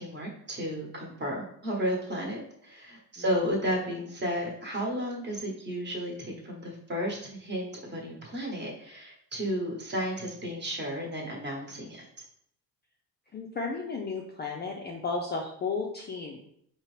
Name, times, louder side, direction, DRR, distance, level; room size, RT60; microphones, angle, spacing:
voice 1, 0.0-12.1, equal, 25° right, -1 dB, 1.1 m, -33 dB
voice 2, 13.3-16.4, left 4 dB, 25° left, 0 dB, 0.4 m, -33 dB
4.4 x 2.9 x 3.1 m, 0.68 s
cardioid pair, 135°, 40 cm